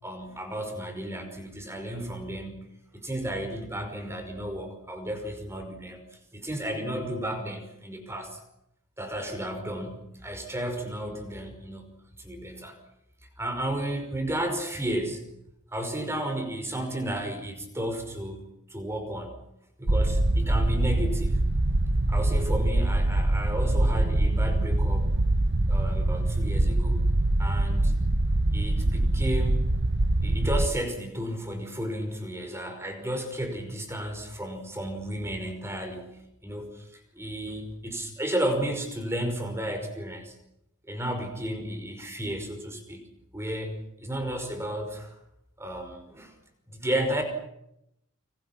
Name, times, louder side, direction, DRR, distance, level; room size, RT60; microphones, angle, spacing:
voice 1, 0.0-2.7 2.9-8.4 9.0-11.9 12.2-12.8 13.4-15.3 15.7-18.4 18.7-19.4 19.8-21.5 22.1-25.1 25.7-27.0 27.4-28.0 28.5-29.7 30.2-40.4 40.9-43.1 43.3-45.2 45.6-46.3 46.7-47.2, right 1 dB, 10° right, 6 dB, 5.5 m, -33 dB
sound 1, 19.9-30.7, right 1 dB, 55° right, 1.1 m, -24 dB
29.5 x 26.5 x 6.1 m, 0.80 s
head